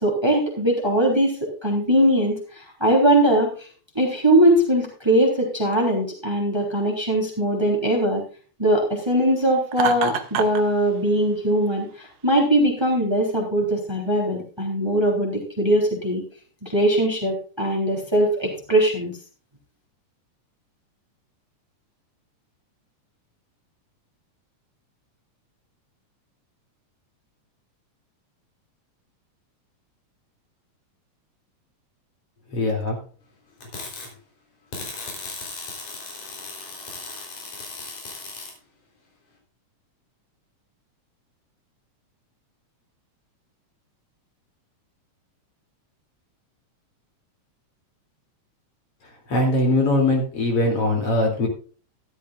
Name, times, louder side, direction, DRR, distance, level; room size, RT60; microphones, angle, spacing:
voice 1, 0.0-3.7 3.9-8.2 8.6-16.2 16.6-19.1, right 1 dB, 10° right, 0 dB, 3.1 m, -21 dB
Laughter, 9.7-10.7, right 9 dB, 90° right, 2.8 m, -26 dB
voice 2, 32.5-33.0 49.3-51.5, left 1 dB, 45° left, 1 dB, 3.8 m, -21 dB
sound 1, 33.6-34.1 34.7-38.5, left 3 dB, 85° left, 5.4 m, -36 dB
13.5 x 13.0 x 2.5 m, 0.39 s
omnidirectional pair, 3.6 m